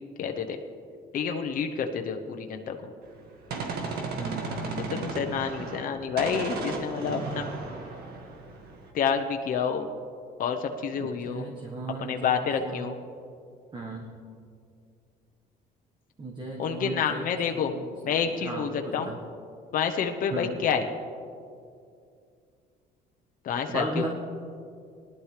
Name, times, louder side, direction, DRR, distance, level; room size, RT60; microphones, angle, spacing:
voice 1, 0.2-0.6 1.1-2.9 4.9-7.5 8.9-9.9 10.4-11.5 12.0-13.0 16.6-17.7 18.0-19.1 19.7-20.9 23.4-24.1, left 7 dB, 55° left, 4 dB, 0.9 m, -28 dB
Gunshot gunfire, 3.1-5.9 6.2-8.9, right 3 dB, 70° right, 1.9 m, -35 dB
voice 2, 4.1-5.3 11.0-12.4 12.6-12.9 13.7-14.1 16.2-17.2 17.5-19.2 20.3-20.6 23.7-24.1, right 2 dB, 25° right, 0 dB, 1.4 m, -36 dB
19.5 x 11.5 x 3.3 m, 2.4 s
cardioid pair, 110°, 17 cm